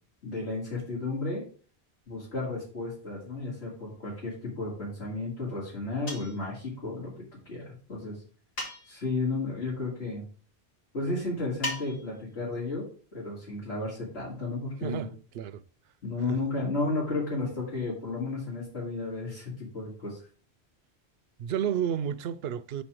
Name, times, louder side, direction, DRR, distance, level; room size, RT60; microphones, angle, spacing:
voice 1, 0.2-1.4 2.1-7.2 7.5-8.2 8.8-10.2 10.9-12.8 13.1-15.1 16.0-20.2, left 3 dB, 80° left, 2.8 m, -33 dB
sound 1, 6.1-6.5 8.6-9.1 11.6-12.2, left 1 dB, 60° left, 2.4 m, -36 dB
voice 2, 14.8-15.6 16.3-16.4 21.4-22.8, right 9 dB, 70° right, 0.8 m, -31 dB
5.6 x 4.4 x 6.2 m
omnidirectional pair, 1.1 m